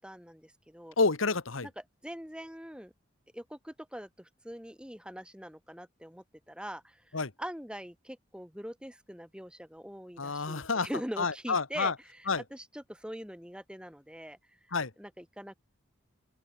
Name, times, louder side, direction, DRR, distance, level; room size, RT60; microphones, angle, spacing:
voice 1, 0.0-0.9 1.6-1.7 2.0-2.9 3.3-7.0 7.4-12.2 12.5-14.4 15.0-15.5, equal, 5° right, 6.7 m, -43 dB
voice 2, 1.0-1.7 7.1-7.3 10.2-10.9 11.2-11.9 12.3-12.4 14.7-14.9, left 4 dB, 75° left, 1.4 m, -29 dB
open air
head